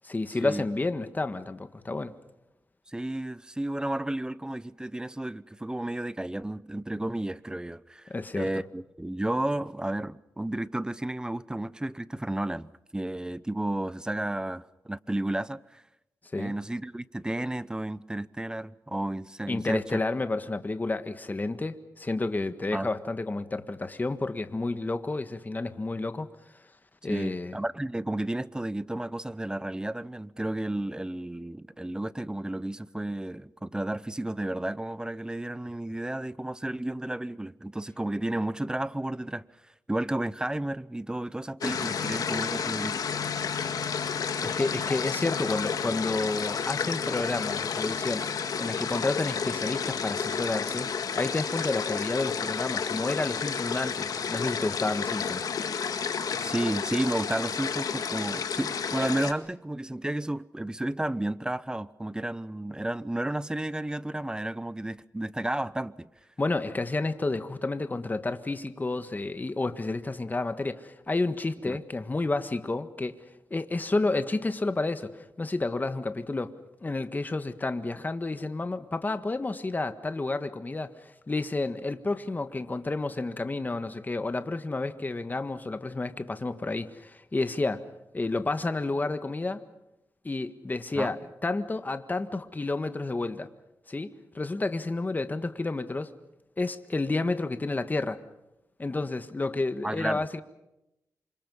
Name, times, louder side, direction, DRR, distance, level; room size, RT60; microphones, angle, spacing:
voice 1, 0.0-2.2 8.1-8.5 16.3-16.5 19.5-26.3 27.0-27.6 44.4-50.9 51.2-55.4 66.4-73.2 73.5-76.5 76.8-87.8 88.1-89.6 90.2-93.5 93.9-96.1 96.6-98.2 98.8-100.4, left 2 dB, 30° left, 1.7 m, -30 dB
voice 2, 2.9-15.8 16.4-20.0 22.7-22.9 27.1-39.5 39.9-43.2 56.4-66.1 71.7-71.8 90.9-91.1 99.8-100.2, right 1 dB, 10° right, 0.8 m, -32 dB
sound 1, 41.6-59.3, left 6 dB, 80° left, 1.8 m, -31 dB
28.0 x 26.5 x 5.5 m
wide cardioid pair, 90°, 6 cm